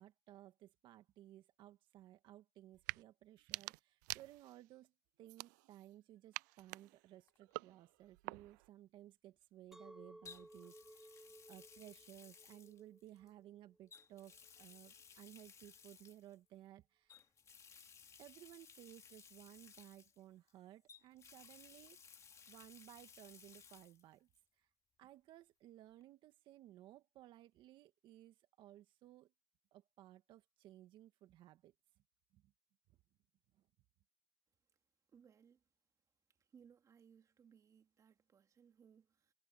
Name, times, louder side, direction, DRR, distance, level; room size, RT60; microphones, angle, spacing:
voice 1, 0.0-4.9 5.2-17.3 18.2-22.2 22.5-24.3 24.6-24.7 25.0-29.3 29.7-31.7 32.3-32.5 33.6-33.7, right 13 dB, 60° right, 1.9 m, -59 dB
sound 1, 2.7-3.0 3.4-4.7 5.2-5.9 6.3-8.7, right 24 dB, 85° right, 0.4 m, -48 dB
Water tap faucet, 7.3-7.5 10.3-13.3 13.9-16.4 17.1-20.5 20.9-24.0 24.3-24.4 26.0-26.1, left 6 dB, 30° left, 2.5 m, -60 dB
Chink clink, 9.7-14.9, right 1 dB, 5° right, 0.5 m, -60 dB
voice 2, 35.1-35.6 36.4-39.3, right 7 dB, 35° right, 2.4 m, -66 dB
supercardioid pair, 95°, 9 cm